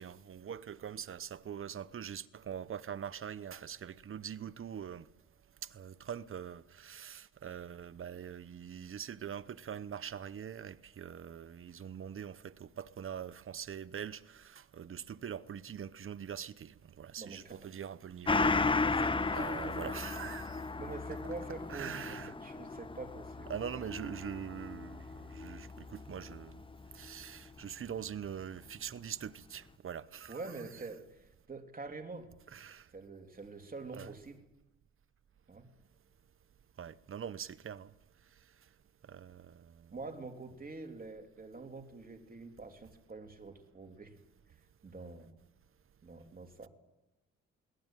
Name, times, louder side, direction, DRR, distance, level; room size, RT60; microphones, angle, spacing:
voice 1, 0.0-5.1 5.6-18.9 19.3-20.6 21.7-22.3 23.5-26.6 26.9-30.5 32.5-32.9 33.9-34.1 36.8-37.9 39.1-39.9, right 8 dB, 45° right, 0.9 m, -43 dB
voice 2, 17.2-17.6 18.8-19.4 19.8-19.9 20.8-23.5 30.3-32.3 32.9-34.4 35.5-35.7 39.9-44.1 44.8-45.3 46.0-46.7, right 3 dB, 30° right, 3.4 m, -46 dB
Gong, 18.3-27.2 27.6-27.7, left 3 dB, 15° left, 0.7 m, -35 dB
22.5 x 18.5 x 9.2 m
cardioid pair, 90°, 30 cm